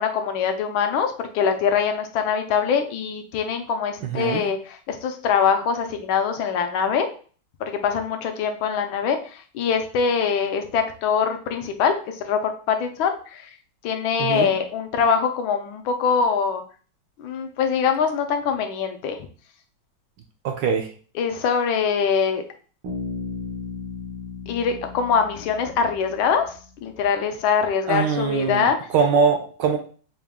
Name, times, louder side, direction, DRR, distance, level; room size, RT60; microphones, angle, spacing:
voice 1, 0.0-7.1 7.6-13.5 13.8-16.6 17.2-19.2 21.1-22.4 24.5-28.8, left 6 dB, 80° left, 6 dB, 1.4 m, -23 dB
voice 2, 4.0-4.5 14.2-14.5 20.4-20.9 27.9-28.7 28.9-29.8, right 6 dB, 75° right, 4 dB, 1.1 m, -22 dB
Bass guitar, 22.8-26.5, left 4 dB, 90° right, 2.0 m, -35 dB
4.7 x 2.3 x 3.5 m, 0.41 s
omnidirectional pair, 2.2 m